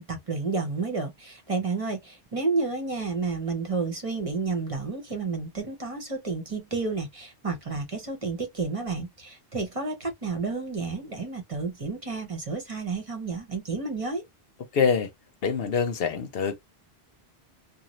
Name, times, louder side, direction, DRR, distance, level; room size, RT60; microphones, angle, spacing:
voice 1, 0.0-14.2, right 4 dB, 35° right, 0.9 m, -31 dB
voice 2, 14.7-15.1 15.4-16.6, left 6 dB, 70° left, 0.8 m, -25 dB
2.6 x 2.2 x 3.0 m
omnidirectional pair, 1.1 m